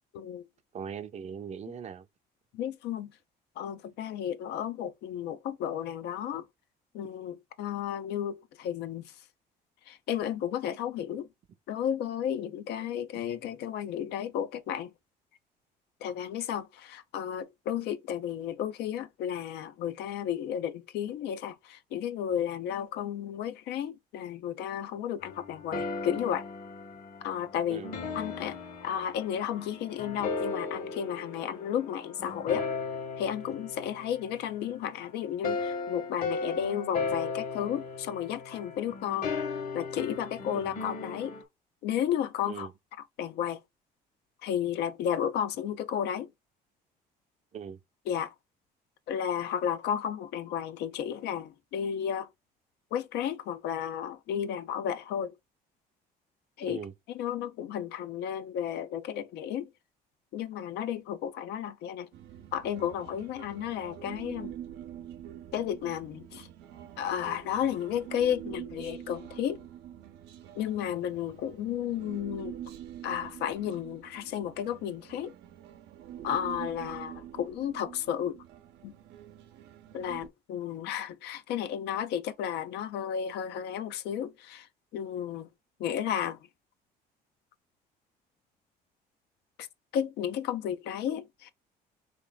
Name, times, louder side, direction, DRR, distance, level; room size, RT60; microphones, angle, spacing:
voice 1, 0.1-0.5 2.5-3.1 3.6-6.4 6.9-9.1 9.9-11.3 11.7-14.9 16.0-26.4 27.2-27.8 28.1-32.7 33.2-39.3 39.7-41.3 41.8-42.7 43.2-43.6 44.4-46.3 48.1-48.3 49.1-52.3 52.9-55.4 56.6-56.8 57.1-59.7 60.3-62.1 62.5-64.5 65.5-66.5 67.0-69.6 70.6-72.6 73.0-75.3 76.2-78.4 78.8-78.9 79.9-84.7 84.9-85.5 85.8-86.4 89.9-91.5, left 9 dB, 80° left, 0.6 m, -33 dB
voice 2, 0.7-2.1 27.7-27.9 40.5-40.7 42.5-42.7 47.5-47.8 56.7-56.9 76.2-76.3, right 7 dB, 40° right, 0.6 m, -40 dB
sound 1, 25.2-34.9 35.4-41.4, left 4 dB, 60° left, 1.4 m, -36 dB
Human voice, 62.1-80.3, right 11 dB, 90° right, 0.7 m, -46 dB
3.2 x 3.0 x 3.9 m
cardioid pair, 110°, 17 cm